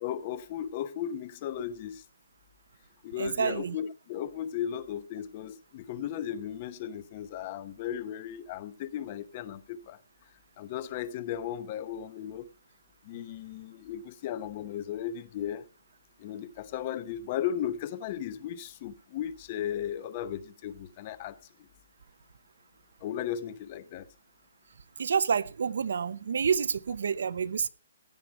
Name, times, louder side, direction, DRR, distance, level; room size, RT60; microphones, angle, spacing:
voice 1, 0.0-2.0 3.0-10.0 10.6-12.5 13.0-15.7 16.2-21.7 23.0-24.1, left 10 dB, 25° left, 0.8 m, -36 dB
voice 2, 3.2-3.8 25.0-27.7, right 6 dB, 65° right, 0.7 m, -28 dB
16.0 x 9.2 x 4.6 m
hypercardioid pair, 170°, 0 cm